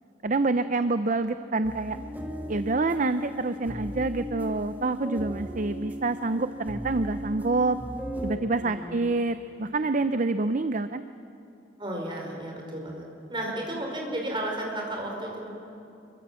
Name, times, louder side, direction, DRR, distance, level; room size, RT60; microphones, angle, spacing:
voice 1, 0.2-2.0 2.5-7.8 8.2-11.0, right 3 dB, 40° right, 11 dB, 0.6 m, -27 dB
sound 1, 1.6-8.4, equal, 10° right, 1.9 m, -37 dB
voice 2, 8.6-9.0 11.8-15.5, right 1 dB, 25° right, 0 dB, 5.1 m, -33 dB
27.5 x 24.0 x 7.6 m, 2.7 s
head